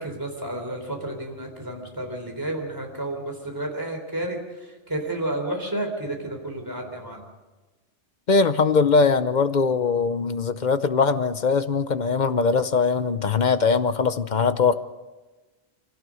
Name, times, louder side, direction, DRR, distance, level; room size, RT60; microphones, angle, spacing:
voice 1, 0.0-4.4 4.9-7.2, right 1 dB, 15° right, 2 dB, 3.8 m, -31 dB
voice 2, 8.3-14.7, left 5 dB, 45° left, 12 dB, 0.8 m, -21 dB
24.0 x 17.5 x 6.3 m, 1.2 s
omnidirectional pair, 1.3 m